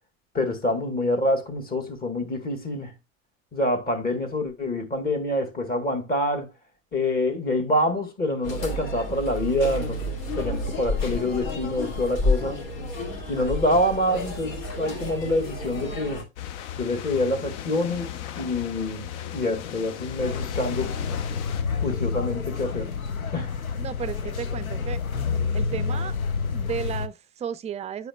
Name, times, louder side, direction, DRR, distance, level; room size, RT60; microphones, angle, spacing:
voice 1, 0.3-3.0 3.5-6.5 6.9-12.6 13.3-16.3 16.7-21.0 21.8-22.9 23.3-23.5, left 1 dB, 20° left, 1.8 m, -26 dB
sound 1, 8.4-16.2, left 2 dB, 70° left, 2.3 m, -30 dB
sound 2, 16.4-21.6, left 10 dB, 55° left, 0.9 m, -36 dB
sound 3, 20.2-27.1, left 5 dB, 85° left, 0.8 m, -29 dB
voice 2, 23.8-25.0 25.5-26.2 26.5-28.1, right 8 dB, 15° right, 0.4 m, -33 dB
9.5 x 5.0 x 2.2 m
figure-of-eight pair, 85°, 41 cm